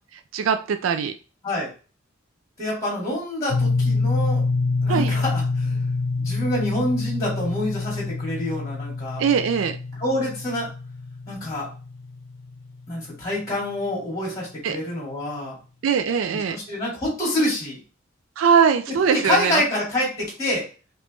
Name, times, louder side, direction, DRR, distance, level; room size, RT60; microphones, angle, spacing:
voice 1, 0.3-1.1 4.9-5.1 9.2-9.8 14.6-14.8 15.8-16.6 18.4-19.6, right 6 dB, 80° right, 8 dB, 0.4 m, -21 dB
voice 2, 2.6-4.4 4.8-5.9 6.2-9.2 10.0-10.7 11.3-11.7 12.9-15.5 16.3-17.8 19.0-20.6, left 1 dB, 20° left, -4 dB, 2.2 m, -27 dB
sound 1, 3.5-13.4, left 3 dB, 70° left, 0.7 m, -26 dB
5.1 x 3.0 x 3.2 m, 0.35 s
head